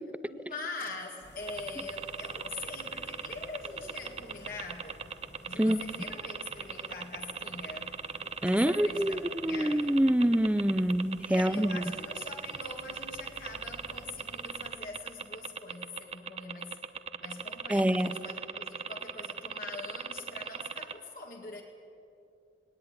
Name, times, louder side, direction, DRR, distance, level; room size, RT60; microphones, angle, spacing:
voice 1, 0.3-5.1 5.4-7.9 8.4-10.1 11.3-16.8 17.2-21.6, left 3 dB, 55° left, 2.2 m, -43 dB
sound 1, 1.2-14.7, left 1 dB, 75° left, 5.6 m, -54 dB
sound 2, 1.5-20.9, right 6 dB, 35° right, 0.8 m, -38 dB
voice 2, 8.4-11.8 17.7-18.2, equal, 10° right, 0.5 m, -26 dB
19.5 x 19.0 x 9.7 m
head